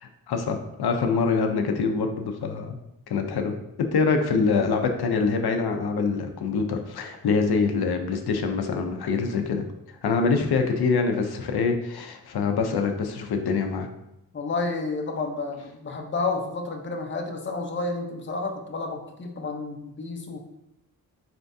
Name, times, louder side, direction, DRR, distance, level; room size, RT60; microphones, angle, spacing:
voice 1, 0.0-2.8 3.1-3.5 3.9-9.6 10.0-13.9, left 4 dB, 85° left, 5 dB, 0.6 m, -25 dB
voice 2, 14.3-20.4, left 3 dB, 30° left, 2 dB, 0.6 m, -30 dB
4.4 x 3.4 x 2.6 m, 0.86 s
wide cardioid pair, 110°, 37 cm